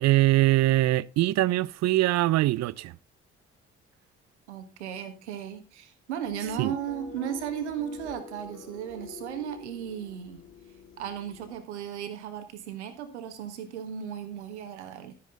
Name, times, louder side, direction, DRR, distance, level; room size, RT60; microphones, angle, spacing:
voice 1, 0.0-2.9 6.6-6.7, right 17 dB, 50° right, 0.6 m, -22 dB
voice 2, 4.5-10.4 11.0-15.1, right 9 dB, 80° right, 1.6 m, -36 dB
sound 1, 6.2-11.6, left 5 dB, 40° left, 2.4 m, -46 dB
13.0 x 9.5 x 3.8 m
figure-of-eight pair, 45°, 34 cm